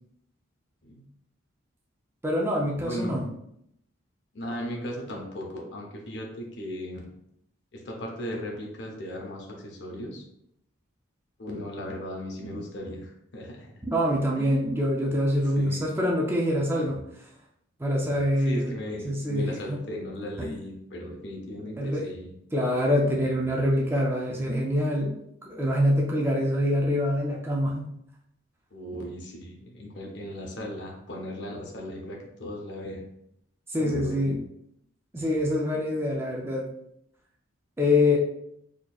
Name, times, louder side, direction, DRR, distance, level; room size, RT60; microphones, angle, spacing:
voice 1, 2.2-3.3 13.9-17.0 17.8-18.7 19.0-19.8 20.4-20.6 21.8-22.1 22.5-25.2 25.5-27.9 33.7-34.4 35.1-36.7 37.8-38.2, left 1 dB, 10° right, -2 dB, 0.4 m, -25 dB
voice 2, 2.8-3.2 4.3-7.1 7.7-10.2 11.4-13.8 14.4-14.5 15.6-15.8 18.4-22.3 28.7-33.0 33.8-34.3 35.2-35.4 35.7-35.8, left 1 dB, 55° left, 0 dB, 0.7 m, -37 dB
4.2 x 2.9 x 2.3 m, 0.76 s
head